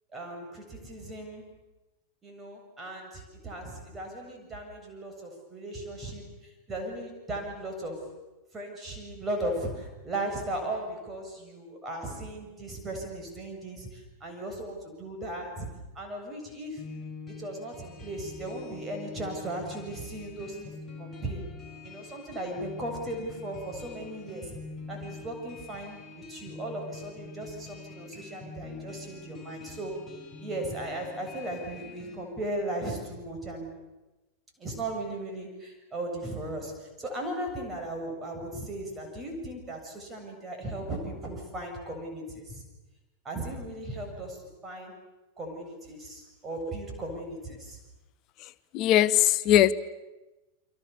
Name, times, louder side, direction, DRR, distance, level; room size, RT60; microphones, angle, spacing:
voice 1, 0.1-1.4 2.2-6.3 6.7-8.1 8.5-16.9 17.4-20.7 21.0-21.4 21.8-24.6 24.9-30.0 30.4-33.7 34.6-42.6 43.2-44.9 45.4-47.8, right 1 dB, 20° right, 2 dB, 7.5 m, -37 dB
sound 1, 16.8-32.2, left 4 dB, 5° left, 6.8 m, -45 dB
voice 2, 48.7-49.7, left 12 dB, 40° left, 17 dB, 1.0 m, -20 dB
30.0 x 24.5 x 7.1 m, 1.1 s
figure-of-eight pair, 90°, 0 cm